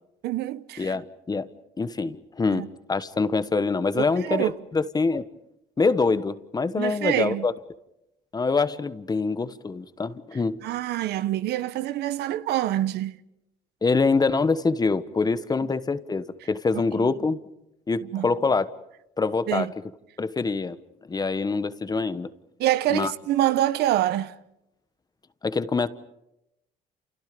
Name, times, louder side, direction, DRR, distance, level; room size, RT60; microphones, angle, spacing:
voice 1, 0.2-0.9 2.5-2.7 4.0-4.5 6.8-7.5 10.6-13.1 18.1-18.3 19.5-19.7 22.6-24.3, right 13 dB, 75° right, 1.2 m, -25 dB
voice 2, 0.8-1.5 1.8-5.2 5.8-7.5 8.3-10.6 13.8-17.4 17.9-18.7 19.2-19.7 20.2-20.8 21.1-22.3 22.9-23.1 25.4-25.9, left 4 dB, 25° left, 1.3 m, -25 dB
29.5 x 29.0 x 5.3 m
cardioid pair, 110°, 17 cm